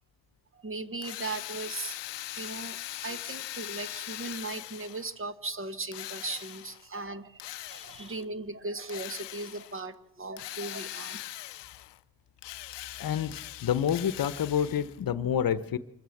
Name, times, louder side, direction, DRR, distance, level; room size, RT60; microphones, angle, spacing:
voice 1, 0.5-2.0 2.3-11.2, right 3 dB, 30° right, 12 dB, 1.2 m, -38 dB
Drill, 1.0-5.2 5.9-6.9 7.4-8.2 8.9-9.8 10.4-12.0 12.4-15.0, left 16 dB, 75° left, 0.6 m, -41 dB
voice 2, 13.0-13.3 13.6-15.8, left 9 dB, 50° left, 15 dB, 1.0 m, -28 dB
25.0 x 14.0 x 7.2 m, 0.86 s
cardioid pair, 110°, 43 cm